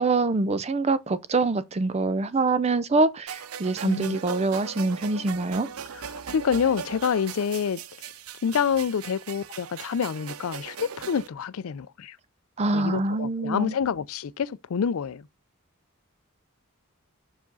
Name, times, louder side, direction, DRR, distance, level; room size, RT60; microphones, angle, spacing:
voice 1, 0.0-5.7 12.6-13.7, right 3 dB, 30° right, 0.5 m, -25 dB
sound 1, 3.3-11.3, right 7 dB, 80° right, 0.6 m, -39 dB
voice 2, 3.8-4.2 5.9-7.8 8.4-12.2 12.7-15.2, left 7 dB, 75° left, 0.4 m, -27 dB
5.9 x 4.8 x 3.8 m
head